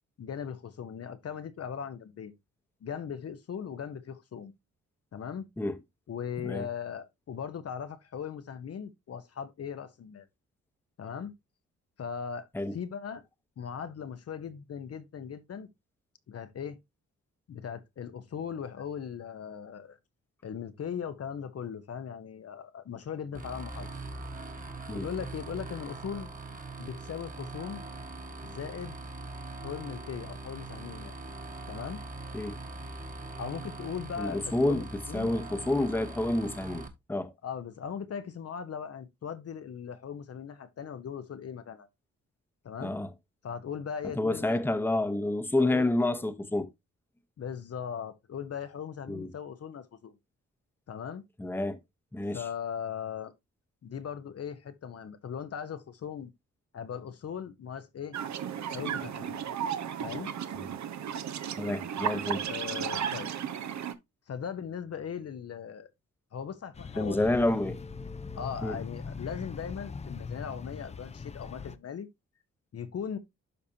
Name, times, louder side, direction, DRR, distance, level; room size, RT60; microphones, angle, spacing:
voice 1, 0.2-2.3 2.8-4.5 5.1-5.5 6.1-10.3 11.0-11.3 12.0-13.2 13.6-15.7 16.3-16.8 17.5-20.0 20.4-23.9 24.9-26.3 26.8-27.8 28.4-29.0 29.6-31.2 31.7-32.0 33.4-35.3 37.4-41.9 42.6-42.9 43.4-44.6 45.6-45.9 47.4-50.1 50.9-51.2 52.3-53.3 53.8-56.3 56.7-58.2 58.7-59.4 60.0-60.3 62.5-63.3 64.3-65.9 66.3-67.4 68.4-72.1 72.7-73.2, left 7 dB, 55° left, 0.8 m, -39 dB
sound 1, 23.3-36.9, right 3 dB, 25° right, 1.3 m, -42 dB
voice 2, 34.2-34.8 35.1-37.3 42.8-43.1 44.2-46.7 49.1-49.3 51.4-51.8 52.1-52.4 61.6-62.4 67.0-68.8, left 2 dB, 5° left, 0.9 m, -29 dB
sound 2, 58.1-63.9, right 9 dB, 70° right, 0.8 m, -34 dB
sound 3, 66.7-71.8, left 5 dB, 20° left, 0.5 m, -41 dB
12.0 x 4.1 x 2.7 m
cardioid pair, 115°, 30 cm